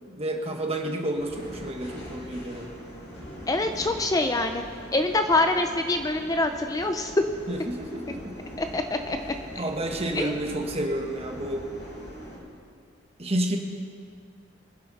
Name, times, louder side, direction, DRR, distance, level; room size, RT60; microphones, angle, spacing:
voice 1, 0.1-2.7 7.5-8.4 9.5-11.6 13.2-13.6, right 1 dB, 30° right, 3 dB, 1.4 m, -30 dB
sound 1, 1.2-12.4, equal, 65° left, 4.0 m, -42 dB
voice 2, 3.5-4.6 4.9-7.1 8.6-9.2 10.1-10.3, left 2 dB, 20° left, 7 dB, 0.5 m, -25 dB
23.0 x 10.0 x 4.2 m, 2.2 s
head